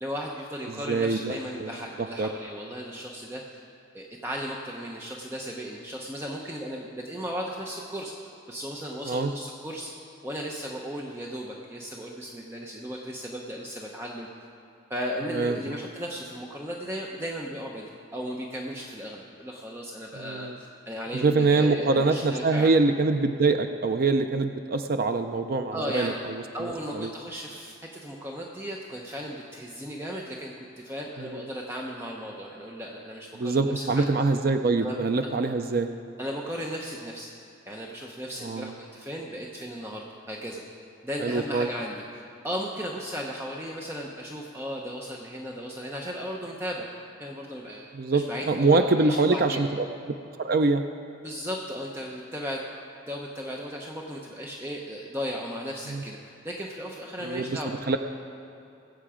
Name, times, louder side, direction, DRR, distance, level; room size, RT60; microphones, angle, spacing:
voice 1, 0.0-3.4 3.9-8.1 8.5-9.9 10.2-14.3 14.9-20.5 20.9-22.7 25.7-26.2 26.5-34.0 34.8-35.0 36.2-37.3 37.7-40.6 41.0-42.0 42.4-46.9 47.2-49.6 51.2-52.6 53.1-56.2 56.4-57.7, equal, 10° right, -1 dB, 0.8 m, -35 dB
voice 2, 0.7-2.3 9.0-9.3 15.3-15.8 20.1-20.6 21.1-27.1 31.2-31.5 33.3-35.9 38.4-38.7 41.2-41.7 47.9-49.9 50.4-50.8 55.9-56.0 57.2-57.6 57.9-58.0, right 3 dB, 45° right, 7 dB, 0.5 m, -25 dB
20.5 x 8.2 x 5.0 m, 2.7 s
head